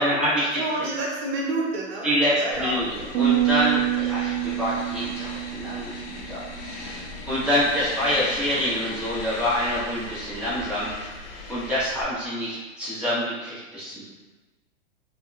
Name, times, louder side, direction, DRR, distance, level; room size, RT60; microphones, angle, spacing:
voice 1, 0.0-0.6 2.0-11.1 11.5-14.1, equal, 5° right, -11 dB, 1.1 m, -26 dB
voice 2, 0.6-2.1 2.4-2.8, right 2 dB, 55° right, -2 dB, 0.9 m, -28 dB
sound 1, 2.5-12.0, left 2 dB, 50° left, 0.6 m, -38 dB
sound 2, 3.1-6.6, right 13 dB, 85° right, 0.6 m, -26 dB
2.7 x 2.2 x 2.5 m, 1.3 s
hypercardioid pair, 110°, 38 cm